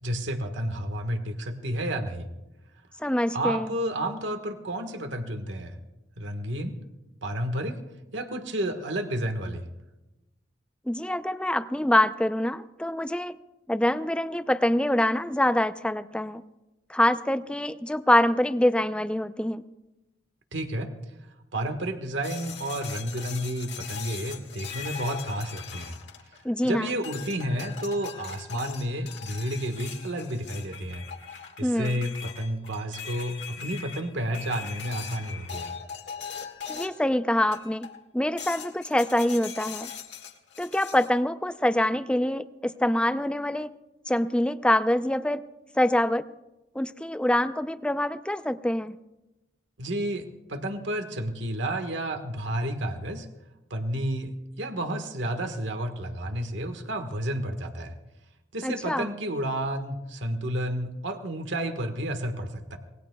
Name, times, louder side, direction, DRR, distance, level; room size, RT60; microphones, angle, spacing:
voice 1, 0.0-2.3 3.3-5.8 6.2-6.7 7.2-7.8 8.1-9.6 20.5-20.9 21.5-26.0 26.6-31.0 31.6-35.7 49.8-53.3 53.7-54.3 54.6-58.0 58.5-62.8, right 1 dB, 80° right, 6 dB, 1.5 m, -31 dB
voice 2, 3.0-3.7 10.9-13.4 13.7-16.4 16.9-19.6 26.4-26.9 31.6-32.0 36.7-37.9 38.1-39.9 40.6-43.7 44.1-45.4 45.8-46.3 46.7-49.0 58.6-59.1, left 1 dB, 5° left, 11 dB, 0.5 m, -25 dB
sound 1, 22.2-26.6 27.0-37.1 37.5-38.0 38.4-41.1, left 7 dB, 70° left, 1.8 m, -40 dB
25.5 x 20.0 x 2.3 m, 0.98 s
head